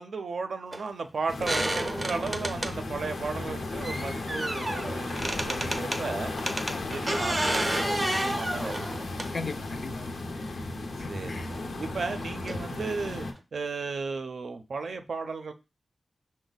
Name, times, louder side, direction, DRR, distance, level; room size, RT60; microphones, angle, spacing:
voice 1, 0.0-6.3 6.9-9.0 11.0-13.3 13.5-15.5, right 4 dB, 75° right, 0.5 m, -35 dB
sound 1, 0.7-0.8 1.4-2.7 3.8-6.0 6.4-9.6 10.7-10.8 12.5-12.6 13.0-13.1 13.4-13.5, right 1 dB, 20° right, 0.6 m, -31 dB
sound 2, 1.3-13.3, left 2 dB, 85° left, 0.7 m, -35 dB
voice 2, 6.7-7.0 9.3-11.5, left 4 dB, 55° left, 0.4 m, -40 dB
6.0 x 2.1 x 3.9 m
wide cardioid pair, 115°, 0 cm